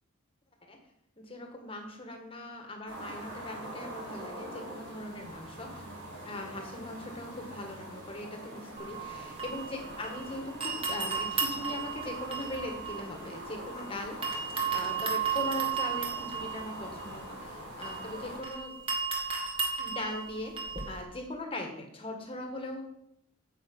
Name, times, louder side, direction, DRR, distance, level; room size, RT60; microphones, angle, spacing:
voice 1, 1.2-5.8 6.2-18.8 19.8-20.6 20.9-22.8, left 1 dB, 25° left, 3 dB, 1.7 m, -40 dB
sound 1, 2.9-18.4, right 1 dB, 50° right, 3.6 m, -44 dB
sound 2, 8.8-10.3 10.6-13.8 14.2-21.0, right 6 dB, 25° right, 1.8 m, -34 dB
9.2 x 7.6 x 5.4 m, 0.77 s
head